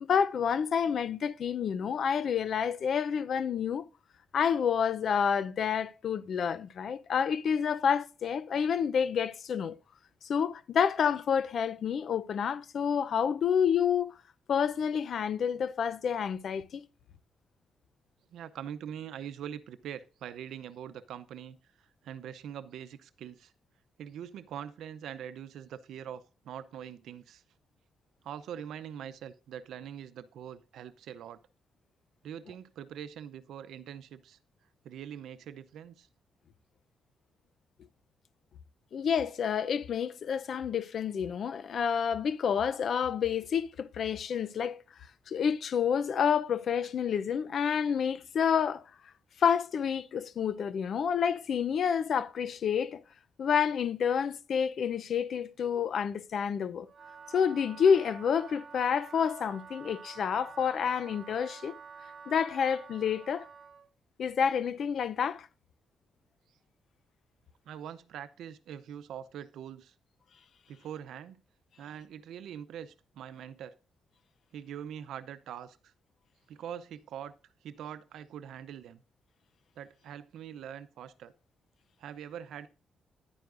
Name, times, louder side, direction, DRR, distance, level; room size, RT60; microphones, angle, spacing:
voice 1, 0.1-3.8 4.3-9.8 10.2-14.1 14.5-16.8 38.9-44.8 45.3-48.8 49.4-53.0 53.4-56.9 57.3-61.7 62.3-63.5 64.2-65.5, left 7 dB, 60° left, 0.6 m, -29 dB
voice 2, 18.3-23.5 24.0-27.4 28.2-31.4 32.2-34.4 34.8-36.1 67.7-69.9 70.7-71.4 71.8-73.8 74.5-75.9 76.5-77.3 77.6-79.0 79.8-81.3 82.0-82.7, right 9 dB, 90° right, 0.7 m, -43 dB
Wind instrument woodwind instrument, 56.8-63.9, right 6 dB, 45° right, 0.6 m, -49 dB
10.5 x 9.4 x 2.6 m
cardioid pair, 120°, 0 cm